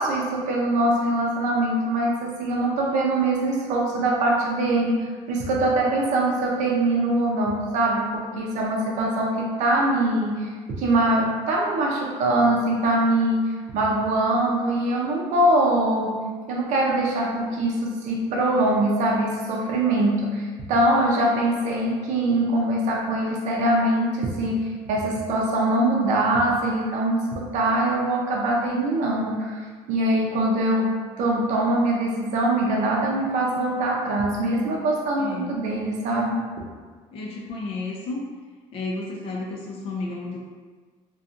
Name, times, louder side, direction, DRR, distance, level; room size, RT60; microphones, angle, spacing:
voice 1, 0.0-10.5 10.8-16.2 16.5-29.6 29.9-36.4, right 1 dB, 70° right, -2 dB, 0.5 m, -23 dB
voice 2, 35.2-35.5 37.1-38.2 38.7-40.4, left 3 dB, 45° left, -2 dB, 0.4 m, -32 dB
2.6 x 2.3 x 2.4 m, 1.5 s
cardioid pair, 125°, 13 cm